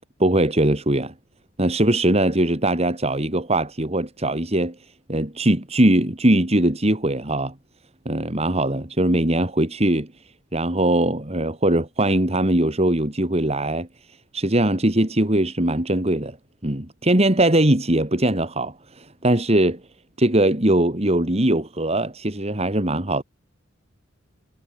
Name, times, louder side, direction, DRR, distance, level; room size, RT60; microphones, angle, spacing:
voice 1, 0.2-1.1 1.6-4.8 5.1-7.5 8.0-10.1 10.5-13.9 14.3-16.4 16.6-19.8 20.2-23.2, right 1 dB, 35° right, 2.6 m, -21 dB
head